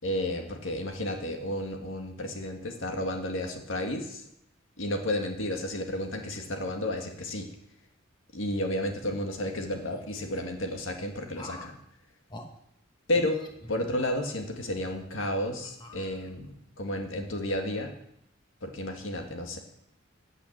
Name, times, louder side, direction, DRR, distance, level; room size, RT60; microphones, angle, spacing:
voice 1, 0.0-4.3 4.8-7.5 8.3-11.8 13.1-13.4 13.7-17.9 18.6-19.6, left 1 dB, 75° left, 3 dB, 1.8 m, -32 dB
sound 1, 9.0-10.4 11.3-11.8 12.3-12.5 13.1-14.4 14.8-15.0 15.6-16.5, left 1 dB, 25° left, 1.2 m, -47 dB
9.6 x 8.5 x 7.4 m, 0.77 s
head